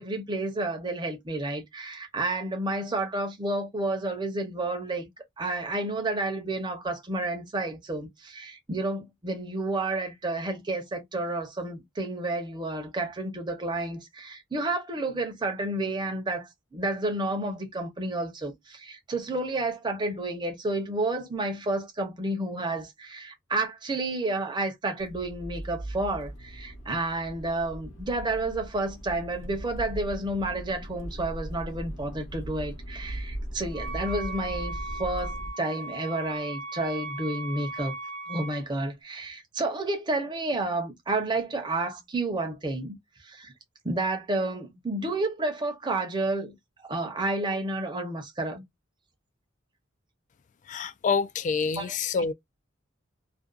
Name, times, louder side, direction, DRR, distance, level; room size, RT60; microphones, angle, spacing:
voice 1, 0.0-5.1 5.4-37.9 38.3-43.5 43.8-46.6 46.8-48.6 51.8-51.9, right 2 dB, 25° right, 0.7 m, -30 dB
Accelerating revving vroom, 25.0-35.5, right 1 dB, 65° left, 0.9 m, -39 dB
Wind instrument woodwind instrument, 33.7-38.6, right 2 dB, 65° right, 0.7 m, -38 dB
voice 2, 50.7-52.3, left 5 dB, 40° left, 0.3 m, -27 dB
2.5 x 2.2 x 2.3 m
head